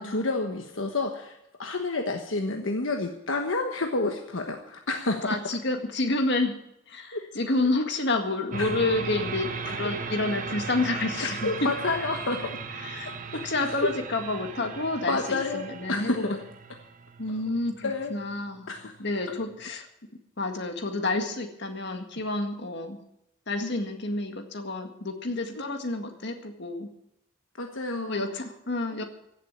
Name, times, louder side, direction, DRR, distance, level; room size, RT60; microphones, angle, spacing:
voice 1, 0.0-5.4 7.1-7.3 8.6-8.7 11.2-12.6 13.0-13.1 13.7-13.9 15.1-15.6 15.9-16.4 17.8-18.1 18.7-18.9 19.3-19.4 23.6-23.7 25.5-25.7 27.6-28.2, left 3 dB, 80° left, 4 dB, 1.3 m, -29 dB
voice 2, 5.2-6.6 6.9-11.7 12.8-16.4 17.2-18.7 19.0-19.9 20.4-23.0 23.5-26.9 28.1-29.0, left 2 dB, 60° left, 5 dB, 1.9 m, -29 dB
sound 1, 8.5-19.6, right 4 dB, 40° right, 1.1 m, -37 dB
16.0 x 7.6 x 8.8 m, 0.81 s
head